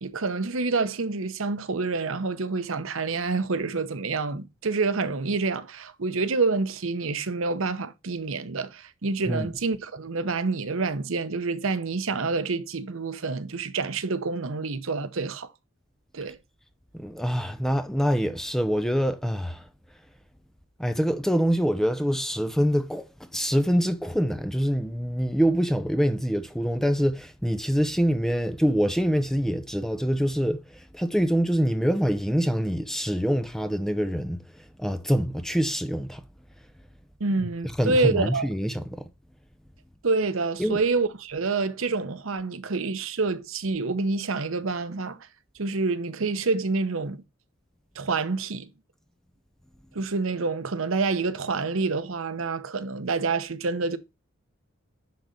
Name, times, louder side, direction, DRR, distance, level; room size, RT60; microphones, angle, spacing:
voice 1, 0.0-15.5 16.1-16.4 37.2-38.5 40.0-45.3 45.6-47.2 48.0-48.7 49.9-54.0, right 3 dB, 75° right, 0.8 m, -27 dB
voice 2, 16.9-19.6 20.8-30.6 30.9-34.4 34.8-36.2 37.6-39.0 40.6-40.9, equal, ahead, 0.8 m, -25 dB
10.5 x 4.0 x 5.3 m
head